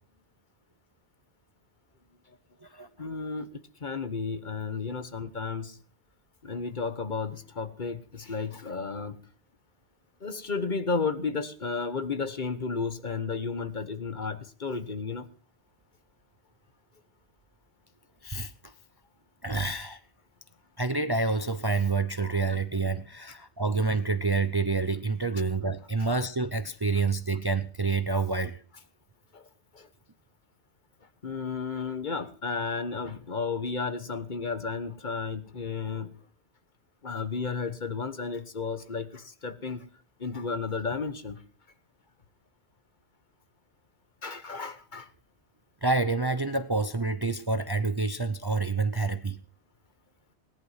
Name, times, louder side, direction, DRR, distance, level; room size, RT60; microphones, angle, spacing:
voice 1, 3.0-5.8 6.4-9.2 10.2-15.3 22.2-22.4 29.3-29.5 29.7-29.9 31.2-36.1 37.0-39.9 40.2-41.4 44.2-45.1, left 4 dB, 45° left, 1.3 m, -33 dB
voice 2, 18.2-18.7 19.4-20.0 20.8-28.6 45.8-49.4, right 3 dB, 25° right, 0.6 m, -28 dB
18.0 x 11.0 x 5.7 m
omnidirectional pair, 1.1 m